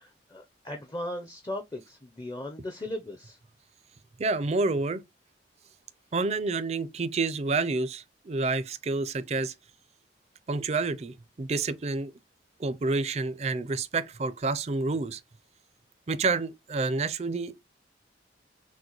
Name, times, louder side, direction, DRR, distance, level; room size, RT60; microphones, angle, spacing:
voice 1, 0.0-3.4, left 1 dB, 20° left, 0.5 m, -37 dB
voice 2, 4.2-5.0 6.1-9.5 10.5-12.1 12.6-15.2 16.1-17.6, right 3 dB, 35° right, 0.4 m, -29 dB
6.1 x 2.1 x 2.8 m
head